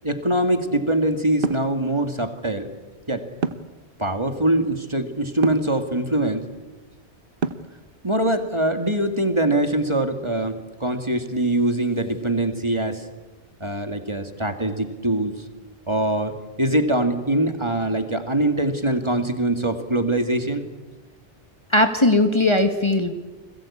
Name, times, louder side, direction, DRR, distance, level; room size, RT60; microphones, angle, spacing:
voice 1, 0.0-2.7 3.1-3.3 4.0-6.5 8.0-13.0 13.6-15.4 15.9-20.7, right 1 dB, 25° right, 7 dB, 2.1 m, -23 dB
sound 1, 1.4-1.7 3.4-3.8 5.4-5.7 7.4-7.8, right 4 dB, 55° right, 1.3 m, -26 dB
voice 2, 21.7-23.1, left 2 dB, 25° left, 6 dB, 1.6 m, -18 dB
29.5 x 21.5 x 8.6 m, 1.2 s
omnidirectional pair, 1.2 m